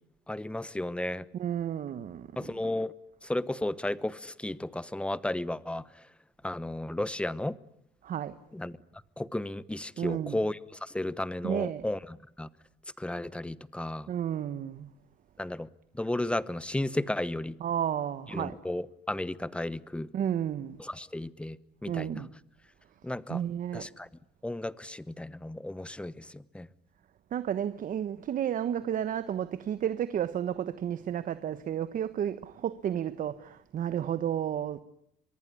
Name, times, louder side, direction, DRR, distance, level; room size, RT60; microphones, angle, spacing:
voice 1, 0.3-1.2 2.4-2.9 3.2-5.8 6.4-7.6 8.5-8.8 9.2-12.5 13.0-14.1 15.4-15.7 15.9-17.5 18.3-20.1 20.8-21.6 21.8-22.2 23.0-23.4 23.7-24.1 24.4-26.7, left 1 dB, 5° left, 1.0 m, -33 dB
voice 2, 1.3-2.5 8.0-8.3 10.0-10.4 11.4-11.9 14.1-14.9 17.6-18.6 20.1-20.8 21.9-22.3 23.3-23.9 27.3-34.8, right 9 dB, 50° right, 1.2 m, -32 dB
24.5 x 22.5 x 9.8 m
cardioid pair, 110°, 17 cm